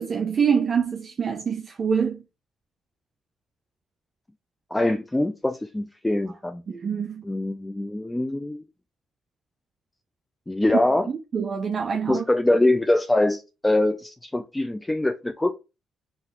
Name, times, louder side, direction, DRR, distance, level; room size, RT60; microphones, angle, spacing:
voice 1, 0.0-2.2 6.7-7.2 11.1-12.2, right 6 dB, 45° right, 0.5 m, -25 dB
voice 2, 4.7-6.6 7.3-8.6 10.5-11.1 12.1-15.5, left 1 dB, 10° left, 0.4 m, -23 dB
3.9 x 2.6 x 4.4 m
cardioid pair, 90°, 0 cm